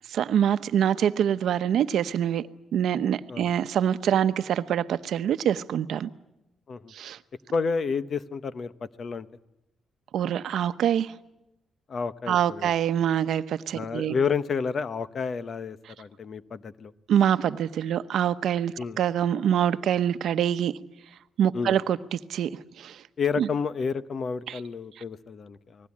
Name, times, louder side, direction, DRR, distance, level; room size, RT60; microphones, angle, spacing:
voice 1, 0.1-2.4 2.7-6.1 6.9-7.2 10.1-11.1 12.3-14.1 17.1-20.7 21.4-22.5 22.8-23.0 23.4-23.5 24.5-24.6, right 9 dB, 75° right, 0.9 m, -25 dB
voice 2, 7.5-8.7 9.0-9.3 11.9-12.7 13.7-16.9 18.8-19.0 21.5-21.8 23.2-25.9, left 5 dB, 40° left, 0.9 m, -30 dB
29.5 x 20.5 x 8.6 m
cardioid pair, 155°, 0 cm